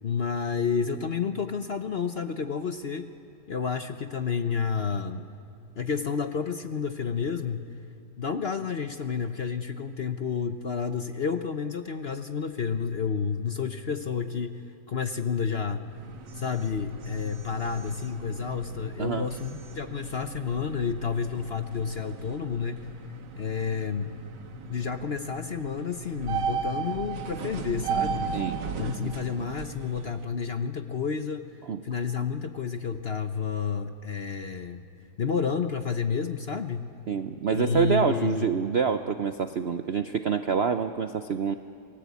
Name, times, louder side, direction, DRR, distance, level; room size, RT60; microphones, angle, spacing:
voice 1, 0.0-3.1 3.5-5.3 5.8-7.7 8.2-15.8 16.3-22.9 23.4-24.1 24.7-28.3 28.8-31.5 31.8-34.8 35.2-36.9 37.5-38.5, left 6 dB, 45° left, 8 dB, 0.8 m, -30 dB
sound 1, 15.8-30.2, right 5 dB, 85° right, 2.0 m, -36 dB
voice 2, 37.1-41.5, right 6 dB, 60° right, 9 dB, 0.6 m, -27 dB
28.0 x 20.0 x 8.4 m, 2.4 s
omnidirectional pair, 1.9 m